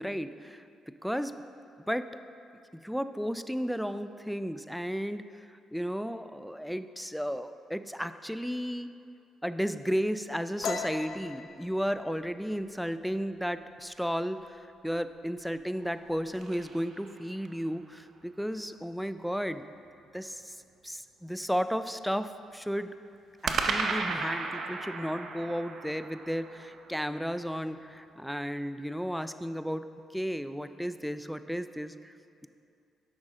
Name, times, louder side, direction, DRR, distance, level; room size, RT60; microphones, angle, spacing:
voice 1, 0.0-0.6 1.0-1.3 1.9-2.0 2.8-5.5 5.7-8.9 9.4-19.7 20.1-20.6 20.8-22.9 23.4-29.8 30.1-32.1, equal, ahead, 11 dB, 0.3 m, -33 dB
sound 1, 10.6-14.1 14.4-14.7 15.1-15.6 15.9-16.6, left 4 dB, 70° left, 0.7 m, -39 dB
sound 2, 15.7-17.6 23.4-27.7, right 4 dB, 60° right, 0.6 m, -35 dB
10.5 x 6.3 x 3.7 m, 2.5 s
cardioid pair, 90°, 0 cm